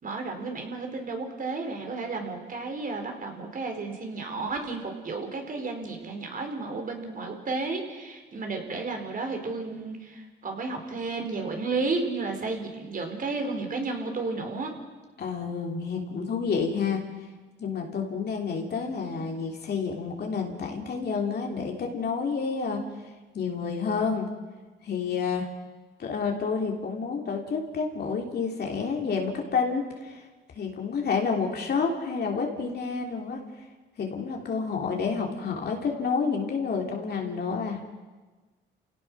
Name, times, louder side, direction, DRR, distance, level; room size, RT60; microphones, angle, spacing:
voice 1, 0.0-14.7, right 3 dB, 45° right, 4 dB, 4.5 m, -32 dB
voice 2, 15.2-17.0 17.6-22.8 23.3-24.3 24.8-25.5 26.0-30.2 30.5-33.4 34.0-37.8, left 5 dB, 55° left, 1 dB, 3.3 m, -29 dB
29.5 x 17.5 x 6.3 m, 1.3 s
cardioid pair, 90°, 20 cm